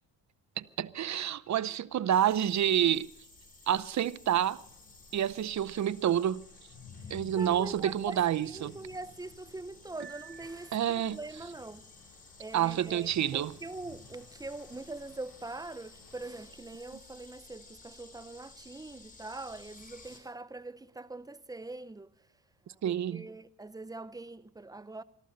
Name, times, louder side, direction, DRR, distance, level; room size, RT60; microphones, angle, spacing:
voice 1, 0.6-3.1 3.7-4.6 5.1-6.5 7.1-8.8 10.7-11.2 12.5-13.6 22.8-23.3, right 10 dB, 40° right, 0.7 m, -28 dB
sound 1, 2.1-20.2, left 3 dB, 20° left, 4.0 m, -55 dB
sound 2, 4.1-16.4, left 5 dB, 60° left, 6.7 m, -56 dB
voice 2, 7.4-8.2 8.5-11.8 12.4-22.1 22.9-25.0, right 2 dB, 10° right, 0.7 m, -43 dB
Piano, 10.0-11.3, right 8 dB, 75° right, 2.5 m, -52 dB
24.5 x 14.0 x 4.1 m
cardioid pair, 105°, 41 cm